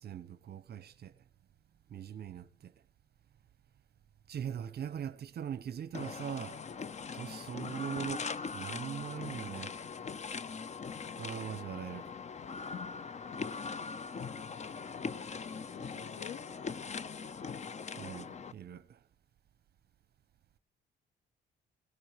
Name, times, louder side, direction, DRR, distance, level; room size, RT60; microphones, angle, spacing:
voice 1, 0.0-1.1 1.9-2.7 4.3-6.6 7.1-9.7 11.2-12.2 18.0-19.0, right 9 dB, 55° right, 0.7 m, -41 dB
sound 1, 5.9-18.5, left 5 dB, 35° left, 0.7 m, -41 dB
voice 2, 15.0-16.4, left 11 dB, 85° left, 0.8 m, -51 dB
18.5 x 14.0 x 3.1 m
cardioid pair, 90°, 20 cm